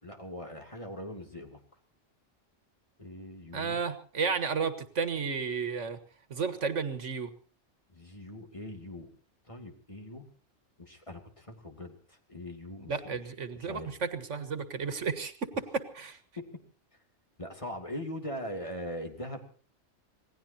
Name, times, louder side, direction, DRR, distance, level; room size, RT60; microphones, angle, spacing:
voice 1, 0.0-1.6 3.0-3.8 7.9-9.1 9.5-10.3 10.8-13.2 13.5-13.9 16.4-16.5 17.4-19.4, left 1 dB, 25° left, 4 dB, 2.9 m, -41 dB
voice 2, 3.5-6.0 6.3-7.3 12.9-16.2, right 5 dB, 85° right, 11 dB, 1.9 m, -32 dB
27.0 x 18.5 x 2.9 m, 0.40 s
omnidirectional pair, 1.2 m